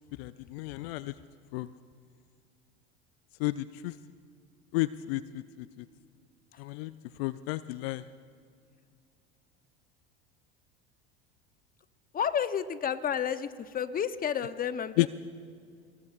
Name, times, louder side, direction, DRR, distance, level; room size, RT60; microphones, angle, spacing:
voice 1, 0.2-1.1 1.5-1.7 3.4-4.0 4.7-5.8 6.6-8.0 15.0-15.1, left 18 dB, 65° left, 15 dB, 0.5 m, -32 dB
voice 2, 12.1-15.1, left 8 dB, 25° left, 12 dB, 0.8 m, -31 dB
25.0 x 19.5 x 2.5 m, 2.3 s
hypercardioid pair, 80°, 31 cm